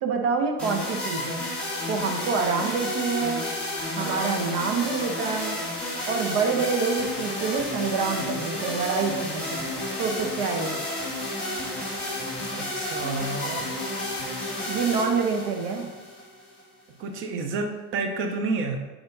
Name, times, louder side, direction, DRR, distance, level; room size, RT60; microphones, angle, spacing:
voice 1, 0.0-1.4 1.9-3.4 3.9-5.6 6.1-9.7 10.0-10.8 14.7-15.9, right 5 dB, 85° right, 4 dB, 1.0 m, -27 dB
sound 1, 0.6-16.6, left 1 dB, 5° left, 2.0 m, -31 dB
voice 2, 3.9-4.4 12.5-13.7 17.0-18.8, right 3 dB, 35° right, 4 dB, 0.5 m, -30 dB
4.5 x 4.2 x 5.2 m, 1.2 s
cardioid pair, 170°, 38 cm